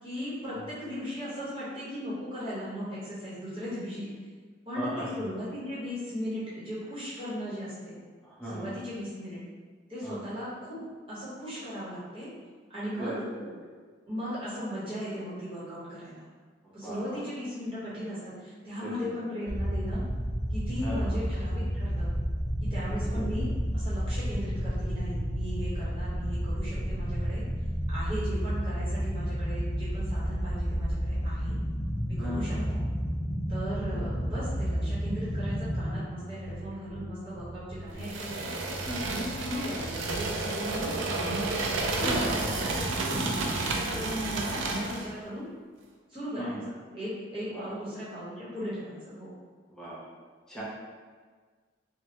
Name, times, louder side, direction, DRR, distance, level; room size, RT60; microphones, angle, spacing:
voice 1, 0.0-4.1 4.6-7.9 8.5-9.4 9.9-10.8 11.1-12.3 12.7-13.2 14.1-16.3 16.7-20.0 20.5-22.1 22.6-27.4 27.9-31.5 32.1-32.8 33.5-38.5 39.0-41.5 41.9-45.5 46.1-49.3, equal, 25° right, -11 dB, 1.1 m, -37 dB
voice 2, 4.8-5.1 8.2-8.7 10.0-10.2 13.0-13.1 13.4-13.5 16.8-17.2 18.8-19.2 20.8-21.2 22.8-23.3 26.7-26.8 32.2-32.9 33.9-34.0 38.8-39.1 42.0-42.4 43.0-43.4 46.4-46.5 47.5-47.8 49.7-50.1 50.5-50.6, equal, 5° left, -9 dB, 0.6 m, -37 dB
sound 1, 19.5-36.0, equal, 50° left, 0.6 m, -31 dB
sound 2, 35.2-43.6, equal, 30° left, 1.0 m, -43 dB
sound 3, 38.0-45.1, right 3 dB, 80° right, 0.4 m, -31 dB
3.2 x 2.2 x 2.9 m, 1.5 s
head